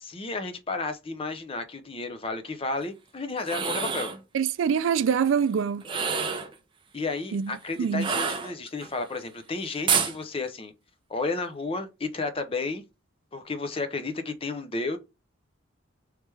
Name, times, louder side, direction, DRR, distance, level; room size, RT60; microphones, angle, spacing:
voice 1, 0.0-4.1 6.9-10.7 11.1-12.8 13.3-15.0, left 3 dB, 25° left, 0.5 m, -32 dB
sound 1, 3.4-4.2 5.8-6.5 8.0-8.9 9.9-10.2, right 6 dB, 25° right, 0.5 m, -27 dB
voice 2, 4.3-5.8 7.3-8.1, right 7 dB, 75° right, 0.3 m, -25 dB
3.2 x 3.2 x 3.3 m
head